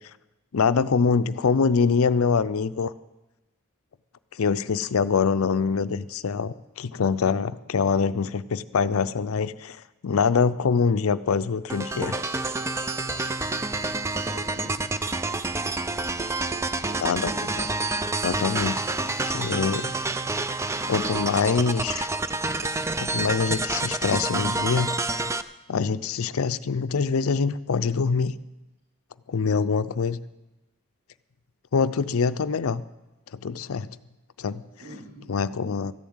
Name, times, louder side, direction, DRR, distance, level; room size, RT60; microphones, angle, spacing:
voice 1, 0.5-2.9 4.4-9.8 10.0-12.2 17.0-17.5 18.2-18.8 19.3-19.9 20.9-22.1 23.0-24.9 25.7-28.3 29.3-30.2 31.7-32.8 33.4-33.9 34.4-34.6 35.3-35.9, left 5 dB, 70° left, 15 dB, 0.5 m, -24 dB
sound 1, 11.7-25.4, right 2 dB, 15° right, 0.4 m, -28 dB
voice 2, 14.1-14.9 16.5-17.7 34.8-35.3, right 1 dB, 90° right, -7 dB, 4.7 m, -43 dB
14.0 x 7.2 x 9.5 m, 1.0 s
head